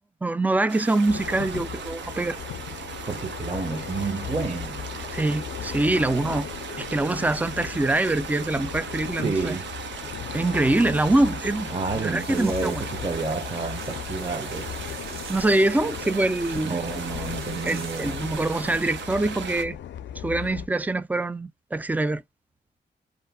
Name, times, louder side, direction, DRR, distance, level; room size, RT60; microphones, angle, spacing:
voice 1, 0.2-2.4 5.1-6.5 6.8-9.6 10.3-11.7 12.0-12.8 15.3-16.7 17.6-19.8 20.2-22.2, right 2 dB, 10° right, 0.3 m, -24 dB
sound 1, 0.7-19.6, right 7 dB, 80° right, 0.7 m, -38 dB
sound 2, 1.1-20.7, left 10 dB, 90° left, 0.4 m, -37 dB
voice 2, 3.1-4.8 9.2-9.6 11.7-14.7 16.6-18.2, right 4 dB, 30° right, 0.7 m, -30 dB
sound 3, 12.2-19.0, right 4 dB, 55° right, 1.2 m, -46 dB
2.5 x 2.4 x 3.5 m
cardioid pair, 90°, 19 cm